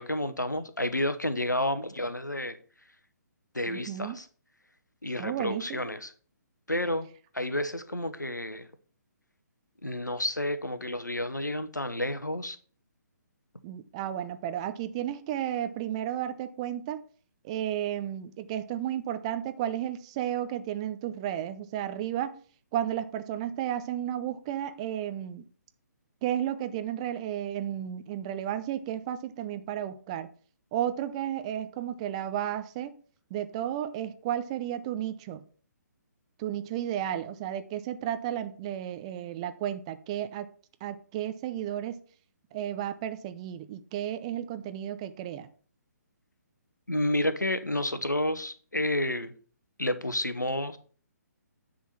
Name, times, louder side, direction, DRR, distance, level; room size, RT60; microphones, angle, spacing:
voice 1, 0.0-2.6 3.5-4.3 5.0-6.1 6.7-7.1 7.3-8.7 9.8-12.6 46.9-49.3 49.8-50.8, left 1 dB, 85° left, 1.0 m, -30 dB
voice 2, 3.7-4.2 5.2-5.9 13.6-17.0 17.4-22.4 22.7-25.4 26.2-30.3 30.7-33.0 33.3-35.5 36.4-40.5 40.8-42.0 42.5-45.5, right 11 dB, 20° right, 0.4 m, -33 dB
9.8 x 3.9 x 5.9 m
figure-of-eight pair, 135°, 10 cm